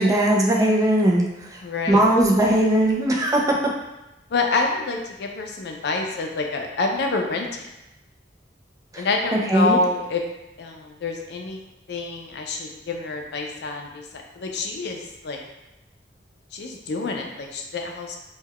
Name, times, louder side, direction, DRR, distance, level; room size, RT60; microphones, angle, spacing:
voice 1, 0.0-1.6 1.9-3.6 8.9-9.0 9.3-9.8, right 1 dB, 20° right, -1 dB, 0.4 m, -19 dB
voice 2, 1.6-2.0 4.3-7.6 9.0-10.2 10.6-11.6 11.9-15.4 16.5-18.2, left 3 dB, 65° left, 2 dB, 0.4 m, -27 dB
2.2 x 2.2 x 3.4 m, 0.94 s
head